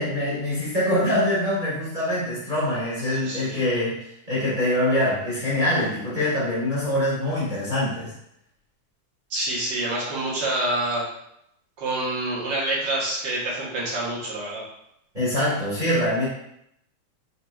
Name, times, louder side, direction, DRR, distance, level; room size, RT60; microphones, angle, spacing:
voice 1, 0.0-8.1 15.1-16.3, left 1 dB, 35° right, -9 dB, 0.7 m, -24 dB
voice 2, 3.1-3.6 9.3-11.1 11.8-14.6, right 1 dB, 55° right, -6 dB, 1.2 m, -27 dB
4.6 x 4.4 x 2.3 m, 0.77 s
omnidirectional pair, 3.5 m